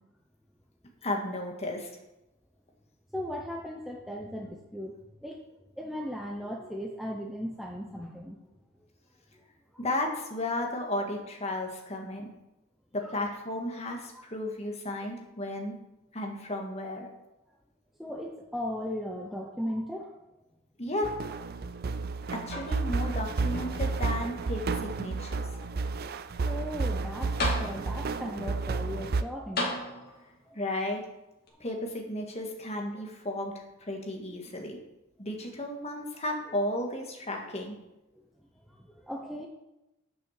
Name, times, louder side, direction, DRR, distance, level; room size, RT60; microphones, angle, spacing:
voice 1, 1.0-1.9 9.8-12.3 12.9-15.8 16.1-17.1 20.8-21.1 22.3-25.4 30.5-31.0 31.6-33.5 33.8-34.8 35.2-37.8, left 1 dB, 30° left, 1 dB, 1.6 m, -34 dB
voice 2, 3.1-5.0 5.2-5.4 5.8-8.4 9.7-9.8 13.0-13.2 18.0-20.1 25.5-25.7 26.4-30.2 30.5-30.6 38.7-39.5, equal, ahead, 0 dB, 0.6 m, -37 dB
sound 1, 21.0-29.2, right 3 dB, 45° right, 0.4 m, -31 dB
sound 2, 22.5-23.1 23.5-24.5 25.3-25.4 26.9-27.0 27.4-28.2 29.6-30.4 31.5-31.6, left 2 dB, 45° left, 2.3 m, -35 dB
8.6 x 6.4 x 6.4 m, 0.96 s
head